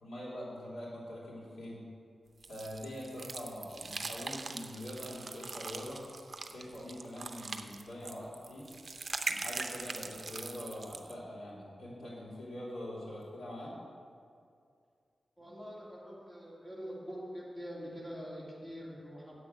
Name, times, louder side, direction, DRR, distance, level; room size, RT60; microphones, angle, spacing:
voice 1, 0.0-1.8 2.5-6.0 6.4-8.7 9.2-13.7, left 1 dB, 85° left, -7 dB, 2.9 m, -44 dB
sound 1, 2.4-11.1, right 3 dB, 50° right, 0.6 m, -41 dB
voice 2, 15.4-19.3, equal, 15° left, -6 dB, 2.3 m, -44 dB
8.2 x 6.0 x 8.1 m, 2.3 s
wide cardioid pair, 85°, 0 cm